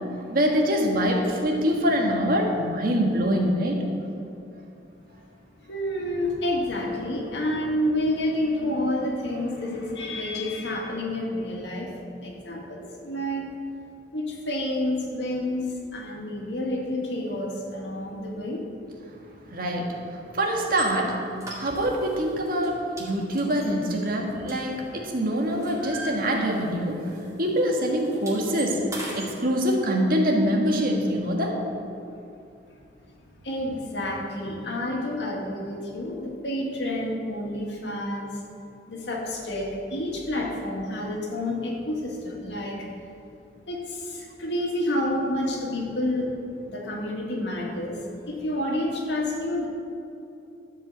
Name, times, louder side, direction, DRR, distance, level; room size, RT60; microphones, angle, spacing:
voice 1, 0.1-3.8 19.5-27.1 27.4-28.8 29.1-31.6, equal, 55° right, 1 dB, 1.6 m, -24 dB
voice 2, 5.7-11.9 12.2-13.5 14.1-15.7 15.9-18.6 33.4-38.3 38.9-42.9 43.7-46.3 46.7-47.9 48.3-49.7, left 1 dB, 70° left, -1 dB, 2.2 m, -29 dB
sound 1, 20.7-20.9 21.4-22.1 22.5-22.7 23.0-25.0 25.3-26.8 27.1-27.3 27.6-29.3, right 1 dB, 20° right, 2.3 m, -39 dB
13.0 x 5.3 x 8.0 m, 2.7 s
head